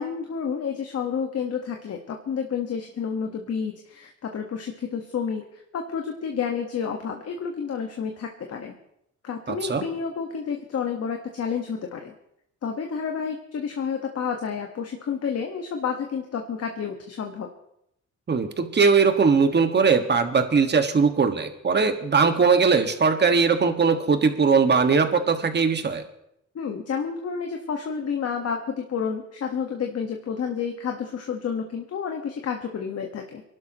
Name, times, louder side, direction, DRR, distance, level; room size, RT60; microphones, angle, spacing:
voice 1, 0.0-8.8 9.2-12.1 12.6-17.5 26.5-33.4, left 6 dB, 55° left, 3 dB, 1.5 m, -30 dB
voice 2, 9.5-9.8 18.3-26.0, right 5 dB, 35° right, 7 dB, 1.7 m, -20 dB
26.5 x 12.0 x 3.0 m, 0.79 s
cardioid pair, 90°, 30 cm